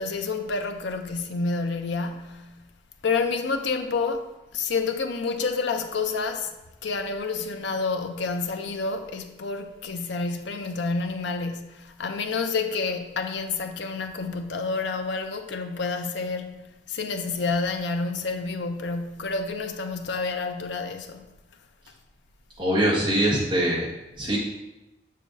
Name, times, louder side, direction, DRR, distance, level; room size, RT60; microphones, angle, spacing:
voice 1, 0.0-2.5 3.0-6.5 6.8-16.6 16.9-21.3, left 4 dB, 80° left, 0.6 m, -29 dB
voice 2, 22.6-23.9 24.2-24.4, right 1 dB, 25° right, 1.5 m, -23 dB
6.7 x 6.4 x 2.6 m
head